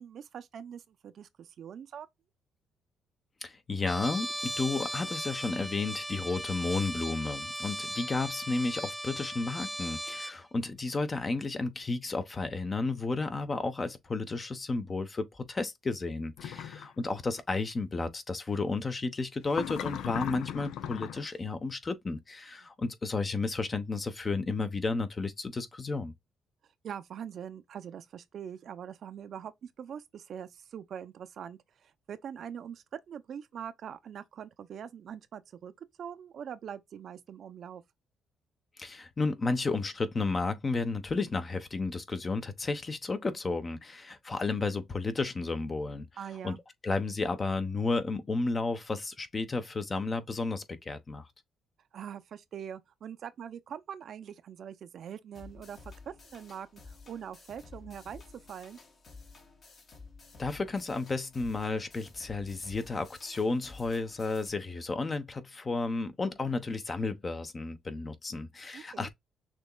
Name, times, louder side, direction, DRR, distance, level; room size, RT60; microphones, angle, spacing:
voice 1, 0.0-2.1 16.5-16.7 26.8-37.8 46.2-46.6 51.9-58.2 58.5-58.8 68.7-69.1, right 8 dB, 60° right, 0.6 m, -43 dB
voice 2, 3.4-26.1 38.8-46.1 46.4-46.5 46.8-51.3 60.4-69.1, left 3 dB, 30° left, 0.9 m, -32 dB
Trumpet, 3.9-10.4, equal, ahead, 0.5 m, -37 dB
sound 1, 16.4-16.9 19.5-21.3, left 10 dB, 85° left, 0.5 m, -37 dB
sound 2, 55.3-64.5, left 4 dB, 45° left, 1.8 m, -52 dB
6.2 x 3.0 x 2.3 m
cardioid pair, 90°, 0 cm